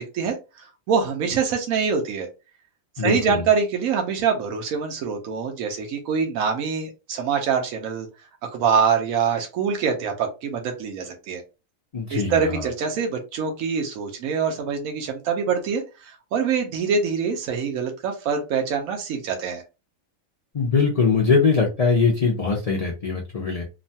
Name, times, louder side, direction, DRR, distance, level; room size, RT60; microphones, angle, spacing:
voice 1, 0.0-2.3 3.0-8.1 8.4-11.4 12.1-19.6, right 6 dB, 85° right, 3 dB, 1.1 m, -25 dB
voice 2, 3.0-3.4 11.9-12.7 20.5-23.6, left 4 dB, 70° left, 0 dB, 0.3 m, -21 dB
3.0 x 2.2 x 2.7 m, 0.29 s
omnidirectional pair, 1.4 m